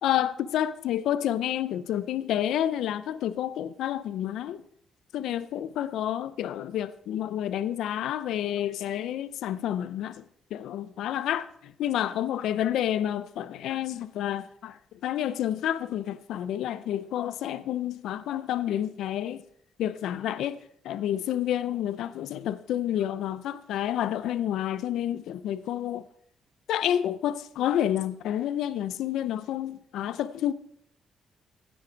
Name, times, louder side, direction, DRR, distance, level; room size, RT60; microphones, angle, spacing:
voice 1, 0.0-4.6 5.1-10.2 10.5-19.4 19.8-26.0 26.7-30.5, left 11 dB, 80° left, 0.6 m, -29 dB
16.0 x 10.0 x 4.7 m
cardioid pair, 90°, 0 cm